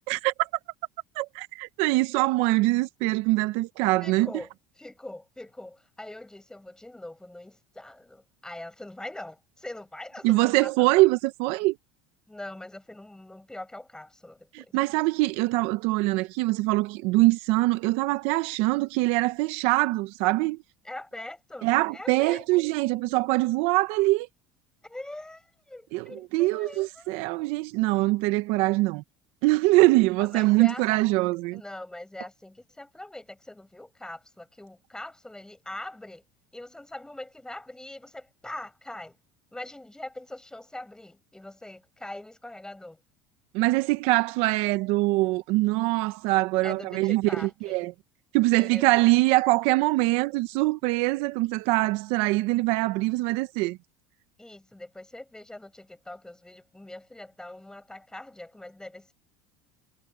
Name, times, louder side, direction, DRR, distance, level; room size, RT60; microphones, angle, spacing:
voice 1, 0.1-0.5 1.2-4.3 10.2-11.8 14.5-20.6 21.6-24.3 25.9-29.0 29.4-31.6 43.5-47.9 48.3-53.8, right 21 dB, 70° right, 1.0 m, -23 dB
voice 2, 4.0-4.5 4.8-10.9 12.3-14.7 20.8-22.4 24.8-27.1 30.2-30.8 31.5-36.2 36.5-39.2 39.5-43.0 46.6-47.9 48.6-49.1 54.4-59.1, left 1 dB, 5° left, 7.4 m, -42 dB
supercardioid pair, 110°, 10 cm